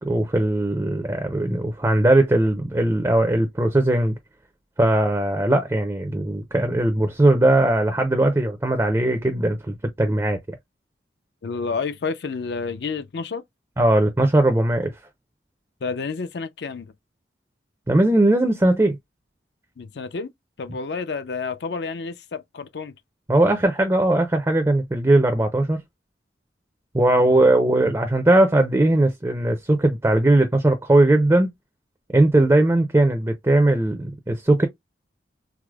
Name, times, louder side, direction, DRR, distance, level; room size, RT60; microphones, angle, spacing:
voice 1, 0.0-4.2 4.8-10.4 13.8-14.9 17.9-19.0 23.3-25.8 26.9-31.5 32.1-34.7, right 1 dB, 15° right, 0.4 m, -19 dB
voice 2, 11.4-13.4 15.8-16.9 19.8-20.3 20.6-22.9 27.1-27.3, left 4 dB, 70° left, 0.5 m, -30 dB
4.7 x 2.0 x 2.2 m
head